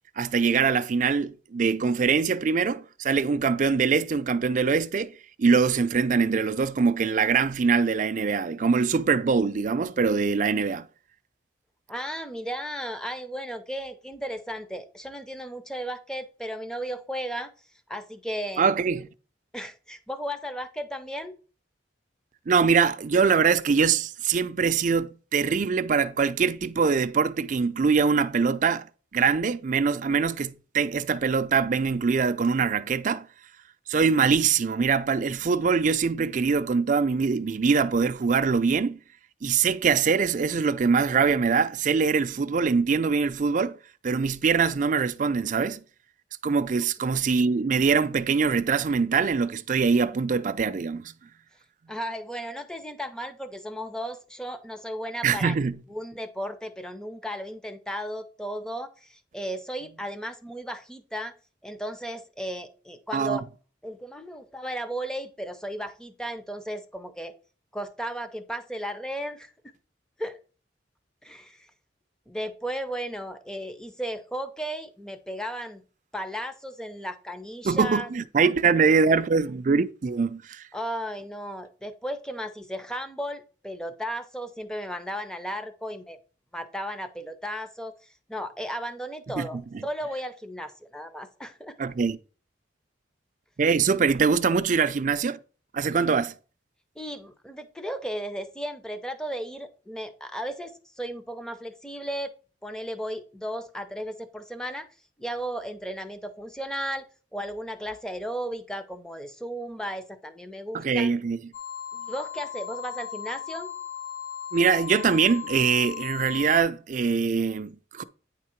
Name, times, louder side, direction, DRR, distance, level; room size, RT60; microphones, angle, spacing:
voice 1, 0.2-5.1 5.4-10.9 18.6-19.1 22.5-28.9 29.1-33.3 33.9-39.0 39.4-43.8 44.0-45.8 46.4-51.1 55.2-55.8 63.1-63.4 77.6-80.7 89.4-89.5 91.8-92.2 93.6-95.4 95.7-96.3 110.7-111.4 114.5-118.0, right 5 dB, 45° right, 0.4 m, -23 dB
voice 2, 11.9-17.5 17.9-18.7 19.5-21.4 51.9-55.5 55.9-61.3 61.6-63.4 63.8-67.3 67.7-69.5 70.2-70.4 71.2-71.7 72.3-75.8 76.1-78.1 80.7-86.2 86.5-91.8 97.0-102.3 102.6-104.9 105.2-107.1 107.3-111.2 111.9-113.7, equal, 5° left, 0.6 m, -35 dB
sound 1, 111.5-116.6, left 9 dB, 40° left, 1.0 m, -37 dB
9.3 x 3.7 x 4.4 m
head